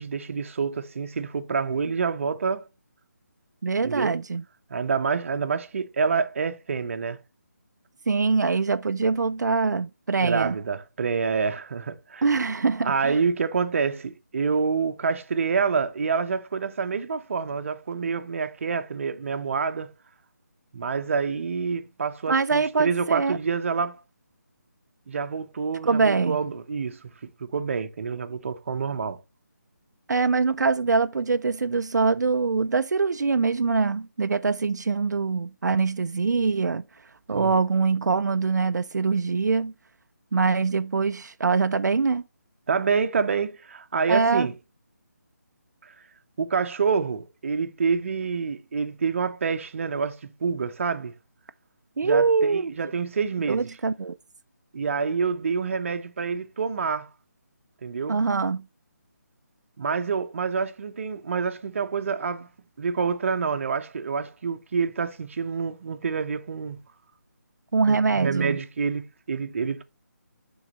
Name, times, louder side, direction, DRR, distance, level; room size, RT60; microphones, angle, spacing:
voice 1, 0.0-2.7 3.8-4.2 4.7-7.2 10.2-12.3 12.8-19.9 20.7-24.0 25.1-27.1 27.4-29.2 37.3-37.5 42.7-44.5 45.8-45.9 46.4-51.1 52.0-53.7 54.7-57.1 57.8-58.2 59.8-62.5 62.8-66.8 67.9-69.8, right 5 dB, 45° right, 0.7 m, -27 dB
voice 2, 3.6-4.4 8.1-10.6 12.2-13.2 22.3-23.4 25.8-26.4 30.1-36.8 37.3-39.7 40.3-42.2 44.1-44.5 52.0-52.7 53.5-54.2 58.1-58.6 67.7-68.6, right 4 dB, 80° right, 0.4 m, -23 dB
11.0 x 3.9 x 3.0 m
figure-of-eight pair, 160°, 9 cm